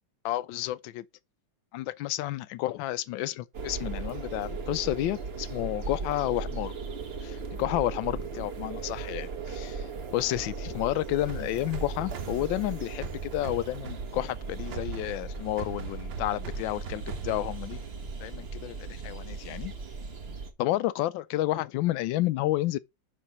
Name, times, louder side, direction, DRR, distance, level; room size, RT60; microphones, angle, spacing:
voice 1, 0.2-1.0 1.7-6.7 7.2-9.9 10.1-17.8 18.2-19.7 20.6-22.8, left 15 dB, 80° left, 1.3 m, -31 dB
sound 1, 3.5-20.5, right 4 dB, 40° right, 1.0 m, -37 dB
sound 2, 11.3-18.1, right 6 dB, 75° right, 1.7 m, -41 dB
5.7 x 5.0 x 5.3 m
omnidirectional pair, 2.1 m